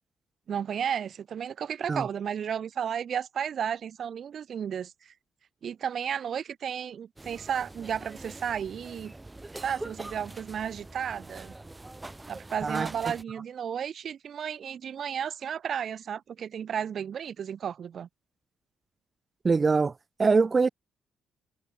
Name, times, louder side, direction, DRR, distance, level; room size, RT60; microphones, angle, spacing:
voice 1, 0.5-5.1 5.6-9.1 9.5-11.5 12.3-18.1, right 8 dB, 60° right, 3.0 m, -33 dB
sound 1, 7.2-13.2, right 2 dB, 20° right, 7.5 m, -44 dB
voice 2, 19.4-19.9 20.2-20.7, right 4 dB, 35° right, 0.3 m, -23 dB
hypercardioid pair, 45°, 0 cm